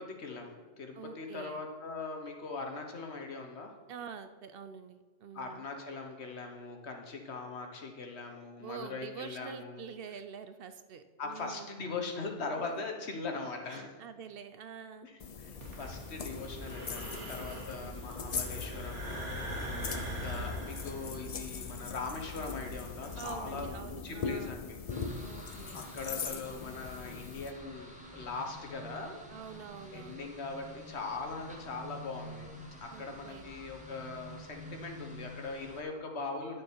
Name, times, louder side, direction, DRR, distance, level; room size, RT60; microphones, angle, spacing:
voice 1, 0.0-3.7 5.3-9.8 11.2-14.0 15.0-24.8 25.4-29.2 29.9-32.5 32.8-36.6, left 3 dB, 70° left, 3 dB, 1.4 m, -41 dB
voice 2, 0.9-1.6 3.9-5.7 8.6-11.7 12.7-12.8 13.7-15.1 17.5-18.0 19.7-20.1 23.2-24.6 25.2-25.8 29.3-30.3 32.9-33.5, right 7 dB, 60° right, 10 dB, 0.7 m, -46 dB
sound 1, 15.2-27.5, left 5 dB, 45° left, 0.5 m, -41 dB
sound 2, 15.6-23.7, equal, 85° right, 1.9 m, -42 dB
sound 3, 24.9-35.8, equal, 5° right, 1.2 m, -49 dB
11.0 x 6.5 x 4.6 m, 1.3 s
omnidirectional pair, 1.2 m